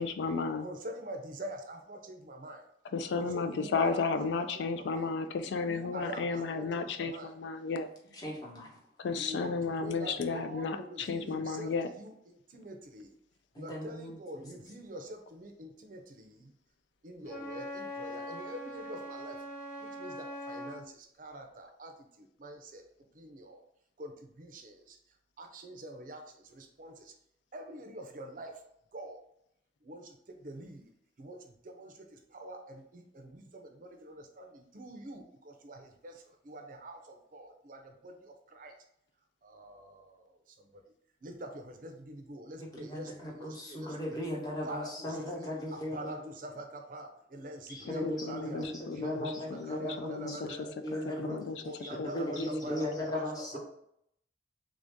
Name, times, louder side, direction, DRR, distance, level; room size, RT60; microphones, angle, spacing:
voice 1, 0.0-0.7 2.9-7.9 9.0-11.9 47.8-49.2 49.5-50.6 51.2-51.6 52.0-52.2, left 4 dB, 80° left, 9 dB, 0.3 m, -33 dB
voice 2, 0.6-2.6 3.1-4.3 4.5-5.0 5.7-7.3 9.2-13.2 13.6-16.5 17.0-19.4 19.8-22.8 23.1-23.6 24.0-25.0 25.4-27.1 27.5-28.6 28.9-29.2 29.8-30.9 31.2-38.7 39.4-40.8 41.2-44.2 44.6-48.7 49.0-49.4 49.7-50.7 51.0-52.9 53.1-53.2 53.5-53.6, right 1 dB, 50° right, 4 dB, 0.5 m, -45 dB
voice 3, 8.1-8.7 9.4-9.5 13.5-14.5 42.6-46.2 47.7-50.4 50.8-53.6, left 1 dB, 20° left, -2 dB, 0.9 m, -37 dB
Wind instrument woodwind instrument, 17.2-20.8, equal, 50° left, 1.0 m, -42 dB
3.5 x 2.6 x 3.5 m, 0.73 s
head